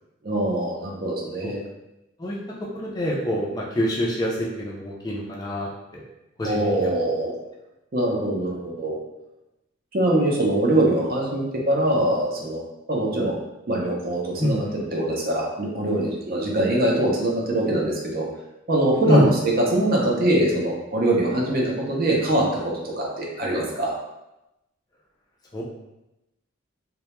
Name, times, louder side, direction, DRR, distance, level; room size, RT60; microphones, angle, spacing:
voice 1, 0.2-1.6 6.4-7.3 7.9-9.0 9.9-12.6 12.9-13.4 13.7-18.3 18.7-23.9, right 1 dB, 45° right, -2 dB, 0.5 m, -23 dB
voice 2, 2.8-6.0 6.4-6.9 14.4-14.7 19.1-19.3 25.5-25.6, left 1 dB, 20° left, -4 dB, 0.3 m, -25 dB
2.1 x 2.0 x 2.9 m, 0.93 s
head